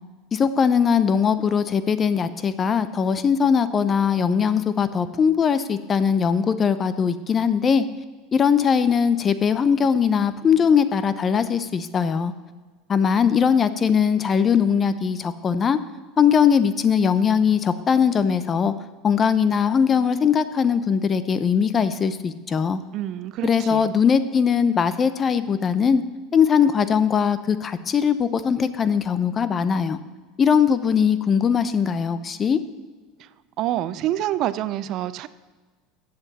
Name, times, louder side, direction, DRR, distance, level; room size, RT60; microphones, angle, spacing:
voice 1, 0.3-7.8 8.3-12.3 12.9-15.8 16.2-18.7 19.0-22.8 23.4-26.0 26.3-30.0 30.4-32.6, left 7 dB, 25° left, 13 dB, 0.6 m, -20 dB
voice 2, 22.9-24.0 33.2-33.3 33.6-35.3, right 13 dB, 50° right, 15 dB, 0.4 m, -27 dB
14.5 x 7.7 x 4.1 m, 1.4 s
supercardioid pair, 125°, 0 cm